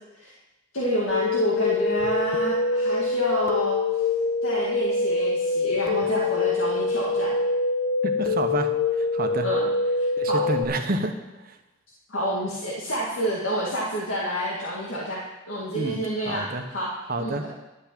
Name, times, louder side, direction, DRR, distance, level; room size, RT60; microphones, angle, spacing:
voice 1, 0.7-4.0 4.4-7.4 9.4-9.7 10.0-10.5 12.1-16.9 17.2-17.5, right 1 dB, 70° left, -5 dB, 2.1 m, -29 dB
sound 1, 1.1-10.6, left 3 dB, 55° left, 1.0 m, -25 dB
voice 2, 8.0-8.7 9.0-9.5 10.2-11.1 15.7-16.0 16.3-16.7 17.1-17.4, right 2 dB, 45° right, 5 dB, 1.1 m, -28 dB
11.0 x 6.0 x 8.7 m, 1.0 s
head